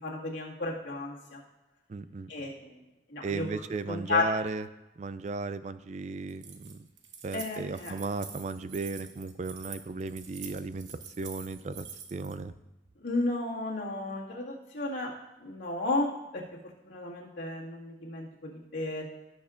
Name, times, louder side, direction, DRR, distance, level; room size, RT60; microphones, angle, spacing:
voice 1, 0.0-1.4 2.3-2.8 3.1-3.5 3.9-4.2 7.3-7.9 13.0-15.1 15.4-16.4 16.9-19.0, left 2 dB, 80° left, -5 dB, 2.0 m, -33 dB
voice 2, 1.9-2.3 3.2-4.7 5.0-6.9 7.2-12.5, right 3 dB, 40° right, 13 dB, 0.3 m, -35 dB
Keys jangling, 6.3-12.3, right 7 dB, 85° right, 1.1 m, -46 dB
17.0 x 6.4 x 2.5 m, 0.98 s
head